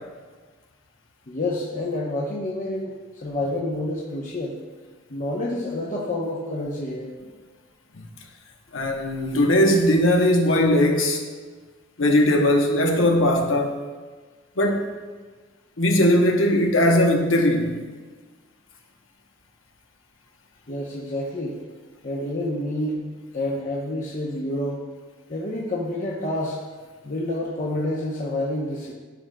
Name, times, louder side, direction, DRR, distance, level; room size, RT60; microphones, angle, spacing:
voice 1, 1.3-4.6 5.1-7.1 20.7-21.6 22.0-24.8 25.3-26.6 27.0-28.9, left 1 dB, 40° left, -4 dB, 0.8 m, -28 dB
voice 2, 8.7-11.2 12.0-13.8 14.6-14.9 15.8-17.7, left 1 dB, 80° left, 2 dB, 1.0 m, -19 dB
13.0 x 4.8 x 2.2 m, 1.4 s
head